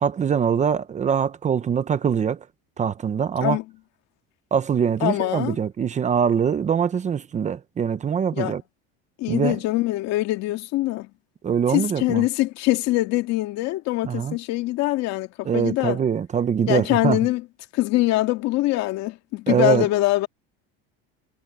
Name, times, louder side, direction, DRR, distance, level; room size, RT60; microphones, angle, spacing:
voice 1, 0.0-2.4 2.8-3.6 4.5-8.6 9.3-9.6 11.4-12.2 14.0-14.4 15.5-17.2 19.5-19.8, right 7 dB, 25° right, 0.8 m, -23 dB
voice 2, 5.0-5.6 8.3-8.6 9.2-11.1 11.7-16.0 16.7-17.4 17.7-20.3, left 17 dB, 60° left, 2.2 m, -23 dB
cardioid pair, 145°, 30 cm